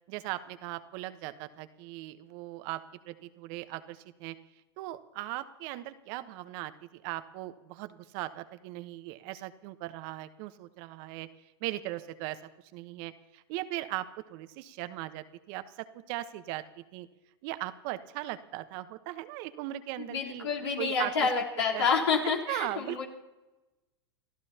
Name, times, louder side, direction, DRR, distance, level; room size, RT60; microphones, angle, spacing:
voice 1, 0.1-4.3 4.8-11.3 11.6-12.4 12.7-16.6 16.9-17.1 17.4-20.5 20.8-21.3 21.6-21.9 22.2-23.0, right 16 dB, 55° right, 11 dB, 1.1 m, -38 dB
voice 2, 20.0-23.0, left 5 dB, 85° left, -3 dB, 3.7 m, -28 dB
29.5 x 14.0 x 2.9 m, 1.1 s
hypercardioid pair, 100°, 14 cm